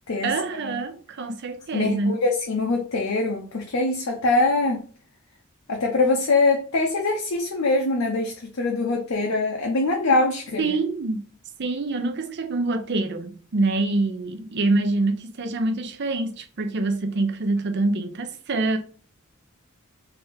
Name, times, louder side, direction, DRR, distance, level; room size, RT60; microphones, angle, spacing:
voice 1, 0.2-2.1 10.6-11.2 11.6-18.8, right 2 dB, 55° right, 0.6 m, -25 dB
voice 2, 1.7-4.9 5.7-10.8, left 3 dB, 90° left, 0.7 m, -23 dB
3.4 x 2.8 x 3.4 m
head